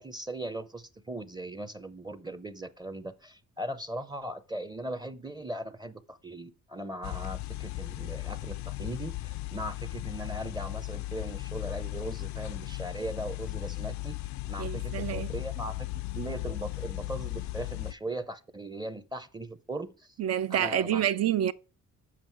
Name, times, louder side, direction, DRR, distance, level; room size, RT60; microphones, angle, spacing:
voice 1, 0.0-14.2 14.5-15.9 16.1-20.2 20.5-21.1, right 1 dB, 15° right, 0.6 m, -39 dB
sound 1, 7.0-17.9, left 19 dB, 70° left, 0.4 m, -36 dB
voice 2, 14.6-15.3 20.2-21.5, right 10 dB, 55° right, 0.6 m, -28 dB
7.4 x 5.3 x 4.5 m
cardioid pair, 90°, 30 cm